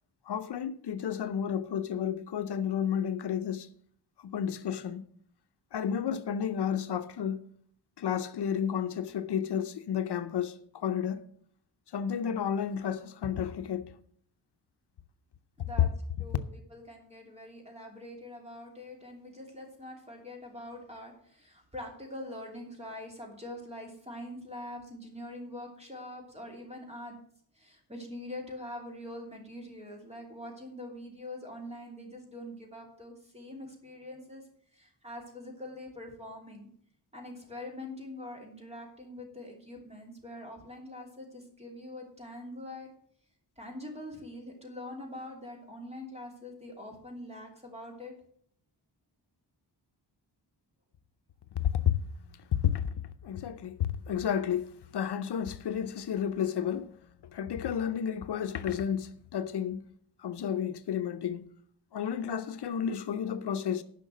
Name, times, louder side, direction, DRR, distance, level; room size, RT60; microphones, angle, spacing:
voice 1, 0.3-3.7 4.2-5.1 5.7-7.5 8.0-11.3 11.9-14.0 51.5-52.0 52.3-52.9 53.2-57.0 57.3-59.9 60.2-61.5 61.9-63.8, left 8 dB, 70° left, 0.7 m, -32 dB
voice 2, 15.6-15.9 16.2-27.2 27.5-34.4 34.7-36.7 37.1-42.9 43.6-48.1, left 1 dB, 15° right, 2.9 m, -44 dB
10.5 x 5.8 x 7.6 m
wide cardioid pair, 170°, 41 cm